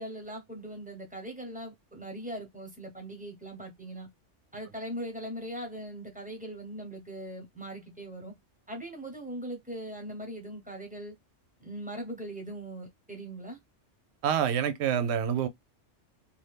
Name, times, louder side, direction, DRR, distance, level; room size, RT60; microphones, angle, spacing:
voice 1, 0.0-4.1 4.5-8.3 8.7-11.1 11.6-13.6, right 1 dB, 5° right, 1.0 m, -40 dB
voice 2, 14.2-15.5, right 8 dB, 70° right, 0.8 m, -27 dB
2.7 x 2.5 x 3.2 m
omnidirectional pair, 1.3 m